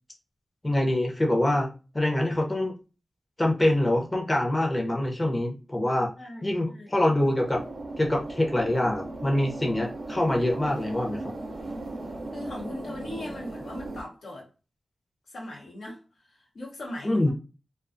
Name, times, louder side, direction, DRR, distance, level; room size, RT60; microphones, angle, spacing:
voice 1, 0.6-1.7 1.9-2.7 3.4-6.1 6.4-7.6 8.0-11.3 17.0-17.3, left 1 dB, 25° left, 0.6 m, -25 dB
voice 2, 6.2-7.3 12.3-14.5 15.3-17.3, left 1 dB, 90° left, 1.0 m, -40 dB
sound 1, 7.4-14.0, right 2 dB, 70° right, 0.5 m, -37 dB
2.4 x 2.2 x 2.5 m
wide cardioid pair, 70°, 0 cm